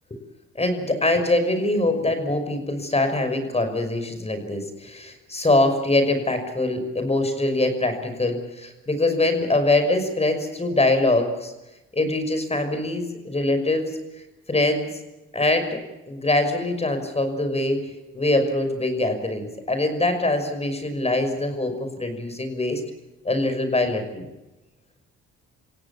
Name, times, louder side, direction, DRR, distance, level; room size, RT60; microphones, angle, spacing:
voice 1, 0.5-11.5 11.9-13.9 14.5-14.9 15.3-15.8 16.1-17.9 18.1-22.8 23.2-24.2, left 2 dB, 20° left, 8 dB, 5.9 m, -23 dB
28.5 x 17.0 x 7.2 m, 1.0 s
cardioid pair, 90°, 30 cm